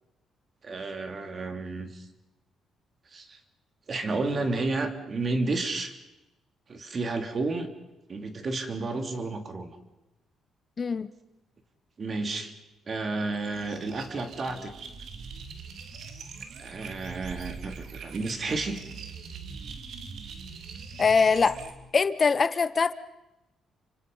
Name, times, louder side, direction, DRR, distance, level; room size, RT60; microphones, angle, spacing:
voice 1, 0.6-2.1 3.1-3.4 3.9-6.0 6.7-7.7 8.1-9.7 12.0-12.5 12.9-14.7 16.6-18.8, right 3 dB, 40° right, 6 dB, 3.3 m, -31 dB
sound 1, 13.3-21.7, right 5 dB, 70° right, 3.1 m, -42 dB
voice 2, 21.0-21.6 21.9-22.9, left 5 dB, 40° left, 13 dB, 0.9 m, -22 dB
29.5 x 25.5 x 5.6 m, 0.98 s
cardioid pair, 90°, 0 cm